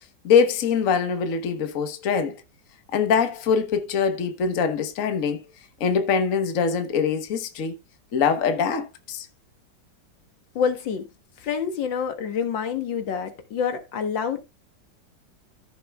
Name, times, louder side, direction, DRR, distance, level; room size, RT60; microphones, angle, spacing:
voice 1, 0.2-2.3 2.9-5.4 5.8-7.8 8.1-9.3, left 6 dB, 50° left, 1.3 m, -23 dB
voice 2, 10.6-11.1 11.4-14.4, left 7 dB, 85° left, 2.0 m, -27 dB
14.0 x 6.7 x 2.3 m
omnidirectional pair, 2.0 m